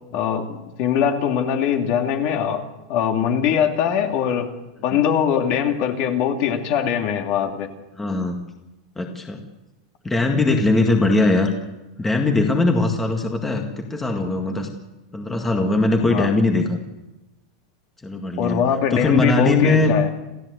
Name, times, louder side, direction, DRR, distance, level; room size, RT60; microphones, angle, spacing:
voice 1, 0.1-2.6 2.9-4.5 4.8-7.7 16.1-16.3 18.4-20.1, left 8 dB, 40° left, 4 dB, 2.5 m, -22 dB
voice 2, 8.0-8.4 9.0-9.4 10.0-11.5 12.0-14.7 15.1-16.8 18.0-18.6 18.9-19.9, left 2 dB, 5° left, 3 dB, 1.9 m, -20 dB
28.0 x 15.5 x 8.1 m, 1.0 s
supercardioid pair, 170°, 3 cm